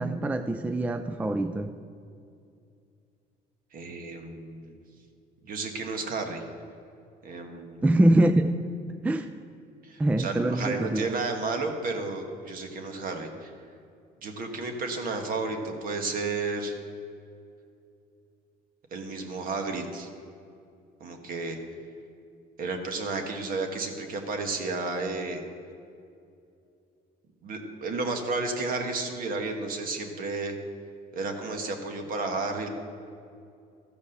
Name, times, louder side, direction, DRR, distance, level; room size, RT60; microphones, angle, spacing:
voice 1, 0.0-1.7 7.8-8.6 9.0-9.3 10.0-11.1, right 1 dB, 10° right, 9 dB, 0.3 m, -24 dB
voice 2, 3.7-4.8 5.4-6.4 7.2-7.8 9.8-13.5 14.2-16.7 18.9-20.1 21.0-21.6 22.6-25.4 27.4-30.5 31.1-32.7, right 3 dB, 55° right, 4 dB, 1.4 m, -32 dB
14.0 x 5.2 x 6.6 m, 2.5 s
cardioid pair, 110°, 17 cm